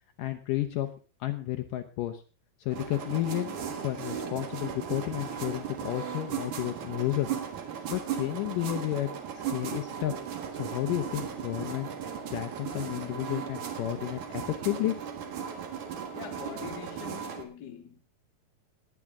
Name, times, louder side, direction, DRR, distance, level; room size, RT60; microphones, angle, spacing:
voice 1, 0.2-0.9 1.2-2.2 2.6-7.3 7.9-9.1 9.5-10.1 10.5-11.9 12.3-15.0, left 15 dB, 75° left, 2.1 m, -32 dB
sound 1, 2.7-17.4, right 8 dB, 60° right, 2.8 m, -37 dB
voice 2, 16.1-18.0, left 7 dB, 40° left, 1.5 m, -43 dB
19.5 x 9.3 x 3.6 m
omnidirectional pair, 4.4 m